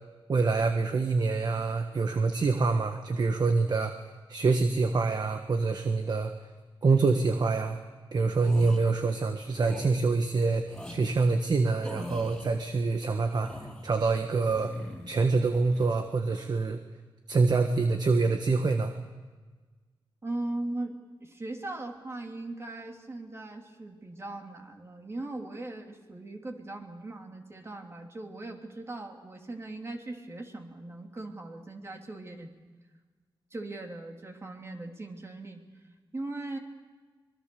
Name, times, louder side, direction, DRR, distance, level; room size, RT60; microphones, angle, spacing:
voice 1, 0.3-3.9 4.3-6.3 6.8-7.8 8.1-13.5 13.8-14.7 15.1-16.8 17.3-18.9, right 4 dB, 50° right, 6 dB, 1.4 m, -26 dB
sound 1, 8.3-8.8 9.6-9.9 10.7-11.0 11.8-12.5 13.2-13.9 14.5-15.2 15.5-15.9, left 1 dB, 5° left, 4.3 m, -41 dB
voice 2, 20.2-32.5 33.5-35.6 36.1-36.6, right 2 dB, 30° right, 3 dB, 2.9 m, -39 dB
25.5 x 21.5 x 6.9 m, 1.4 s
wide cardioid pair, 130°, 9 cm